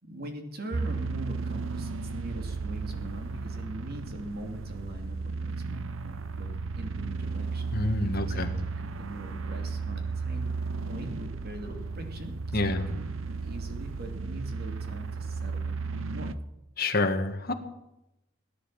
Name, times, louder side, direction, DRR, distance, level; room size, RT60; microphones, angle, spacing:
voice 1, 0.0-6.5 6.8-7.8 8.2-8.5 8.8-10.5 10.9-16.3, right 1 dB, 50° right, 4 dB, 2.8 m, -41 dB
sound 1, 0.7-16.3, right 4 dB, 90° right, 0.8 m, -34 dB
voice 2, 7.7-8.5 12.5-12.9 16.8-17.5, left 2 dB, 50° left, 5 dB, 1.7 m, -27 dB
17.5 x 10.0 x 7.5 m, 0.89 s
head